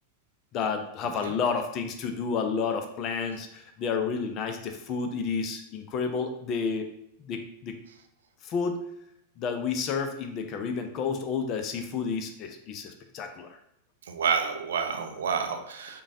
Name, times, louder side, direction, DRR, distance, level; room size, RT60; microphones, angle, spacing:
voice 1, 0.5-6.9 7.2-7.8 8.4-8.8 9.4-13.6, left 5 dB, 35° left, 6 dB, 0.5 m, -30 dB
voice 2, 14.1-16.0, right 6 dB, 65° right, 6 dB, 0.4 m, -29 dB
5.1 x 2.3 x 2.6 m, 0.78 s
figure-of-eight pair, 90°, 0 cm